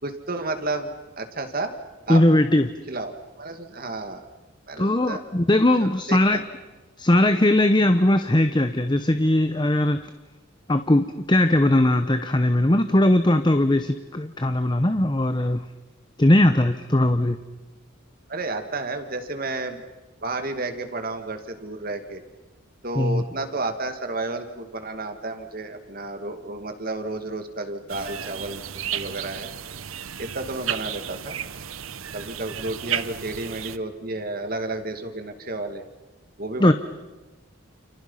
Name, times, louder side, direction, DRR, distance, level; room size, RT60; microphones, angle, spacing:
voice 1, 0.0-1.8 2.1-2.2 2.9-4.2 4.7-5.2 5.8-6.5 18.3-19.8 20.2-22.2 22.8-28.6 28.9-29.5 30.2-31.4 32.1-35.8 36.4-36.7, right 2 dB, 45° right, 7 dB, 2.3 m, -31 dB
voice 2, 2.1-2.7 4.8-6.5 7.0-10.0 10.7-15.7 16.2-17.4 23.0-23.2 36.6-36.7, left 1 dB, 20° left, 9 dB, 0.9 m, -19 dB
sound 1, 27.9-33.8, right 9 dB, 80° right, 1.0 m, -33 dB
29.5 x 29.5 x 5.7 m, 1.1 s
head